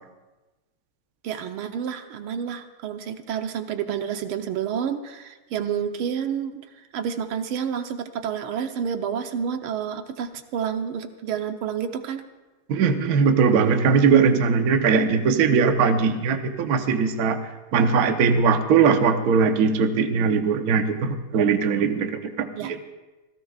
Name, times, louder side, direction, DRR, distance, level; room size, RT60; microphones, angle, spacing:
voice 1, 1.2-6.6 6.9-12.2 22.6-22.7, right 8 dB, 85° right, 7 dB, 1.8 m, -29 dB
voice 2, 12.7-22.9, right 5 dB, 55° right, 7 dB, 1.2 m, -20 dB
26.5 x 16.5 x 2.4 m, 1.1 s
omnidirectional pair, 2.3 m